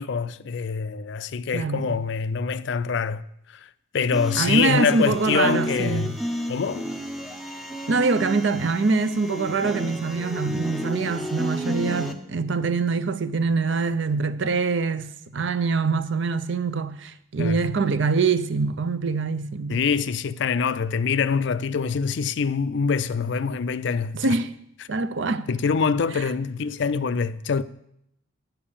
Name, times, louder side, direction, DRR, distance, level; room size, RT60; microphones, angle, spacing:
voice 1, 0.0-6.2 6.5-6.9 17.4-17.7 19.7-24.3 25.5-27.6, left 5 dB, 55° left, 0.4 m, -25 dB
voice 2, 1.5-2.0 4.4-6.1 7.9-19.8 24.1-24.6 24.9-25.5, right 4 dB, 60° right, 0.6 m, -24 dB
sound 1, 4.1-12.1, equal, ahead, 0.6 m, -32 dB
9.4 x 7.0 x 7.1 m
head